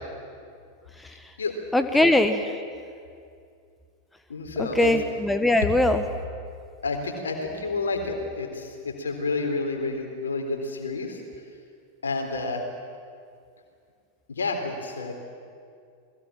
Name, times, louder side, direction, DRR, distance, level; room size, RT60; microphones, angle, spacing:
voice 1, 1.7-2.5 4.6-6.0, left 1 dB, 5° left, 8 dB, 1.1 m, -21 dB
voice 2, 4.3-4.9 6.8-11.2 12.0-12.6 14.3-15.2, left 3 dB, 70° left, 5 dB, 3.7 m, -29 dB
28.5 x 21.0 x 7.6 m, 2.3 s
figure-of-eight pair, 90°, 0 cm